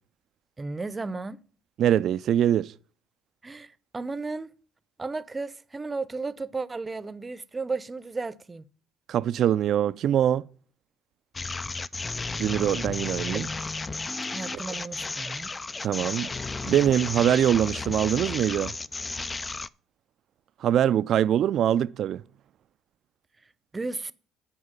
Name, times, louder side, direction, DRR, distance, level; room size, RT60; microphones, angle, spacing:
voice 1, 0.6-1.4 3.4-4.5 5.0-8.6 13.2-13.5 14.3-15.5 23.7-24.1, right 3 dB, 25° right, 0.7 m, -34 dB
voice 2, 1.8-2.7 9.1-10.4 12.4-13.5 15.8-16.3 16.6-18.7 20.6-22.2, right 10 dB, 60° right, 0.4 m, -23 dB
sound 1, 11.3-19.7, left 3 dB, 25° left, 0.4 m, -33 dB
9.7 x 4.8 x 7.4 m
supercardioid pair, 70°, 0 cm